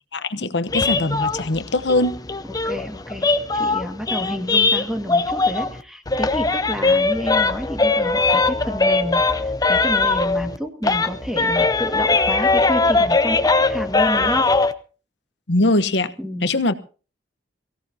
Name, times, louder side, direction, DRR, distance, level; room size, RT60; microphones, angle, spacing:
voice 1, 0.1-2.2 15.5-16.1 16.4-16.7, left 2 dB, 70° left, 13 dB, 1.1 m, -21 dB
sound 1, 0.7-5.8 6.1-10.6 10.8-14.7, left 3 dB, 20° left, 0.8 m, -20 dB
voice 2, 2.4-3.3 3.5-14.5 16.2-16.5, equal, ahead, 5 dB, 2.0 m, -30 dB
22.5 x 16.5 x 2.9 m, 0.37 s
head